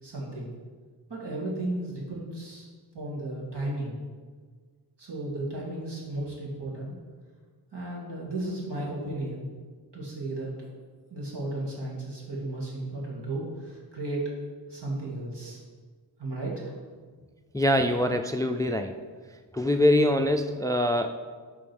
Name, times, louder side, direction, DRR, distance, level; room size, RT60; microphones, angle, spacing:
voice 1, 0.0-0.5 1.1-2.7 2.9-3.9 5.0-6.9 7.7-9.5 9.9-10.7 11.1-14.4 14.7-15.6 16.2-16.7, right 2 dB, 70° right, -4 dB, 2.3 m, -34 dB
voice 2, 17.5-19.0 19.5-21.1, left 1 dB, 10° left, 7 dB, 0.3 m, -23 dB
8.7 x 3.8 x 6.1 m, 1.5 s
wide cardioid pair, 60°, 43 cm